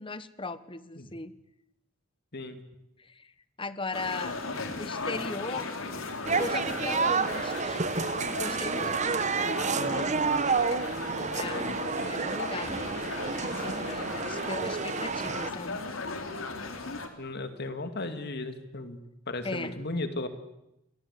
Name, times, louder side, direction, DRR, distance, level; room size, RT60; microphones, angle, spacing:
voice 1, 0.0-1.3 3.0-3.3 3.6-4.4 4.7-5.7 6.3-7.9 8.3-10.2 11.2-12.8 13.5-15.8 19.4-19.8, left 3 dB, 25° left, 14 dB, 1.3 m, -38 dB
sound 1, 3.9-17.1, left 3 dB, 75° left, 3.8 m, -37 dB
sound 2, 6.2-15.5, right 5 dB, 35° right, 1.1 m, -30 dB
voice 2, 9.8-10.1 17.2-19.0 19.3-20.3, left 2 dB, 55° left, 9 dB, 2.5 m, -35 dB
29.5 x 23.0 x 8.4 m, 0.85 s
head